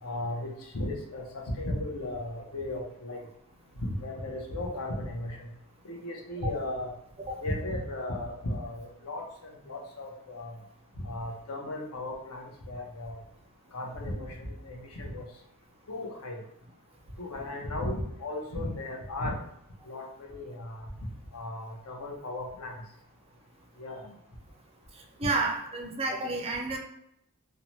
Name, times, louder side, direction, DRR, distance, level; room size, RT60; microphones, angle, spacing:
voice 1, 0.0-3.2 4.0-5.5 5.8-6.9 7.4-10.6 11.0-13.2 13.7-15.2 15.9-16.4 17.2-19.4 19.9-20.9 21.3-22.7 23.8-24.0, left 1 dB, 75° left, 0 dB, 0.6 m, -36 dB
voice 2, 25.2-26.8, right 3 dB, 25° right, 3 dB, 0.3 m, -30 dB
2.7 x 2.1 x 3.0 m, 0.79 s
head